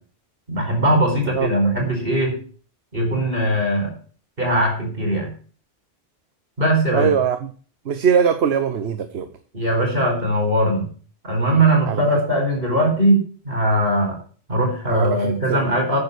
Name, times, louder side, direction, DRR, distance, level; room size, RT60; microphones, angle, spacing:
voice 1, 0.5-2.3 2.9-3.9 4.4-5.3 6.6-7.1 9.5-10.9 11.2-14.2 14.5-16.0, right 1 dB, 60° right, 1 dB, 5.1 m, -20 dB
voice 2, 6.9-7.4 7.9-9.3 11.9-12.0 14.9-15.6, right 7 dB, 80° right, 9 dB, 1.2 m, -21 dB
9.7 x 7.0 x 8.0 m, 0.42 s
omnidirectional pair, 1.1 m